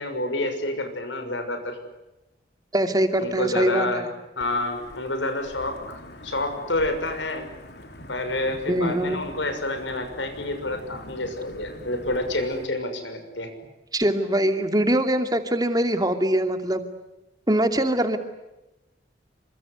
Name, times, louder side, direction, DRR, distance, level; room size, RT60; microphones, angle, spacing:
voice 1, 0.0-1.8 3.2-4.1 4.4-7.5 8.1-13.5, left 2 dB, 75° left, 7 dB, 6.3 m, -28 dB
voice 2, 2.7-4.1 8.7-9.2 13.9-16.8 17.5-18.2, right 1 dB, 20° right, 7 dB, 2.6 m, -23 dB
Wind / Thunder / Rain, 4.4-12.7, left 1 dB, 60° left, 4.1 m, -44 dB
28.0 x 25.5 x 8.3 m, 0.98 s
head